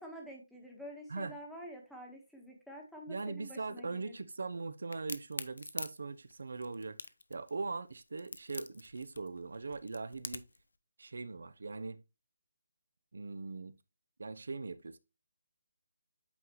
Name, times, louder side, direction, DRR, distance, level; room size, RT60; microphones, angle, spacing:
voice 1, 0.0-4.1, equal, ahead, 1.3 m, -48 dB
voice 2, 3.1-7.0 7.3-10.5 11.0-12.0 13.1-13.7 14.2-15.0, right 3 dB, 65° right, 0.7 m, -40 dB
Crack, 4.9-10.6, left 3 dB, 75° left, 0.7 m, -43 dB
8.4 x 3.9 x 3.0 m
hypercardioid pair, 170°, 0 cm